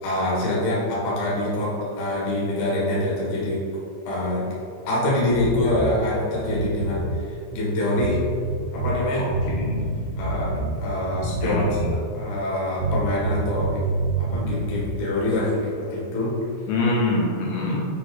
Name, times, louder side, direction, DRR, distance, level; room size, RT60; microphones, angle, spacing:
voice 1, 0.0-3.6 4.0-4.5 4.9-8.2 8.7-9.3 10.2-11.7 12.1-13.8 14.2-16.3, left 1 dB, 55° left, -6 dB, 2.2 m, -25 dB
sound 1, 5.3-5.9 6.4-7.2 8.0-9.0 9.3-10.8 11.1-12.1 12.8-14.9, right 2 dB, 65° right, 2.6 m, -27 dB
voice 2, 9.2-9.9 11.4-11.9 16.7-17.9, left 2 dB, 80° left, -4 dB, 3.0 m, -25 dB
7.8 x 3.2 x 4.0 m, 2.4 s
omnidirectional pair, 5.2 m